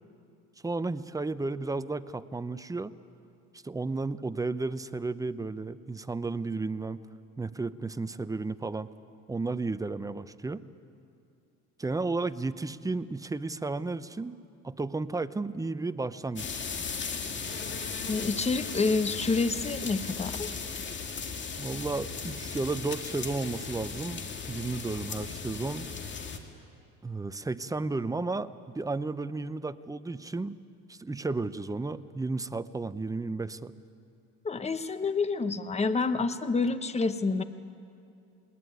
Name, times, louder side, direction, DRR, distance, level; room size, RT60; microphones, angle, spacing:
voice 1, 0.6-2.9 3.6-7.0 7.4-8.9 9.3-10.6 11.8-14.4 14.6-16.7 21.6-25.9 27.0-30.6 30.9-33.7, right 3 dB, 10° right, 13 dB, 0.7 m, -33 dB
sound 1, 16.4-26.4, left 5 dB, 35° left, 2.3 m, -37 dB
voice 2, 18.1-20.5 34.4-37.4, left 4 dB, 20° left, 11 dB, 1.1 m, -28 dB
20.0 x 19.5 x 9.5 m, 2.5 s
supercardioid pair, 100°, 31 cm